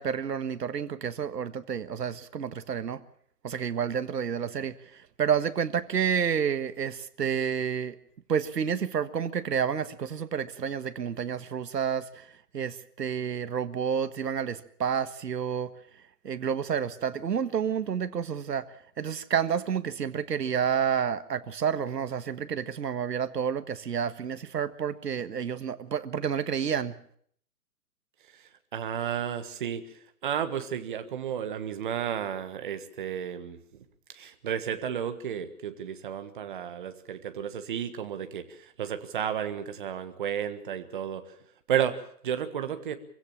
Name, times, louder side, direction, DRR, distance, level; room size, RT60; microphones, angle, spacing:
voice 1, 0.0-3.0 3.4-8.0 8.3-15.7 16.2-18.7 19.0-27.0, right 7 dB, 80° right, 12 dB, 1.6 m, -30 dB
voice 2, 28.3-33.6 34.1-41.3 41.7-42.9, right 9 dB, 30° right, 9 dB, 1.5 m, -32 dB
25.0 x 16.5 x 7.3 m, 0.63 s
hypercardioid pair, 170°, 47 cm